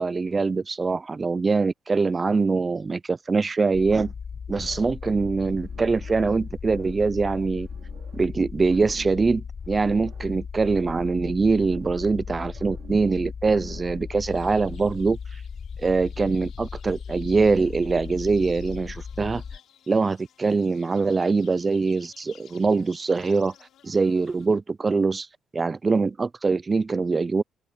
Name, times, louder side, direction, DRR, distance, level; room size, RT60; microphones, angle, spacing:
voice 1, 0.0-4.1 4.5-7.7 8.1-15.2 15.8-19.4 19.9-23.5 23.8-25.3 25.5-27.4, right 4 dB, 30° right, 0.5 m, -23 dB
sound 1, 3.7-19.6, left 6 dB, 40° left, 0.4 m, -37 dB
sound 2, 5.7-6.4 6.6-8.3 8.6-10.3 10.6-12.2 12.5-14.1 14.4-15.0, right 9 dB, 70° right, 2.4 m, -51 dB
sound 3, 14.2-24.5, left 10 dB, 75° left, 2.9 m, -56 dB
cardioid pair, 90°, 0 cm